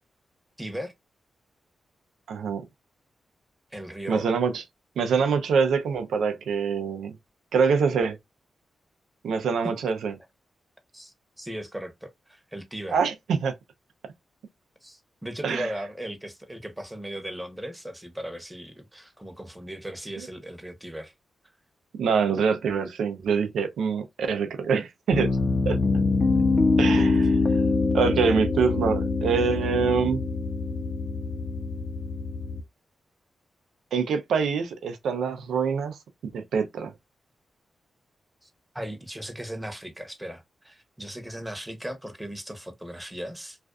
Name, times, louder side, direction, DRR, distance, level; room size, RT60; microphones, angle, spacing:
voice 1, 0.6-0.9 3.7-4.3 10.9-13.0 14.8-21.1 38.4-38.5 38.7-43.6, right 1 dB, 10° right, 0.9 m, -37 dB
voice 2, 2.3-2.6 4.1-4.6 5.0-7.2 7.5-8.2 9.2-10.1 12.9-13.5 15.4-15.7 20.2-20.3 22.0-25.3 25.6-25.8 26.8-30.2 33.9-36.0 36.3-36.9, right 5 dB, 85° right, 0.5 m, -25 dB
Piano, 25.1-32.6, left 3 dB, 35° left, 0.7 m, -24 dB
2.4 x 2.3 x 2.2 m
supercardioid pair, 45°, 0 cm